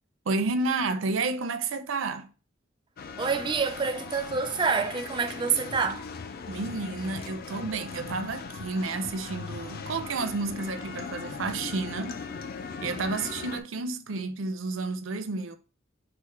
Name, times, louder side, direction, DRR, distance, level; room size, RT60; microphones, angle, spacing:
voice 1, 0.3-2.3 6.5-12.2 12.8-15.6, right 3 dB, 80° right, 0.5 m, -31 dB
sound 1, 3.0-13.6, left 5 dB, 50° left, 0.4 m, -39 dB
voice 2, 3.2-6.1, right 5 dB, 25° right, 0.3 m, -27 dB
4.4 x 2.1 x 4.4 m
head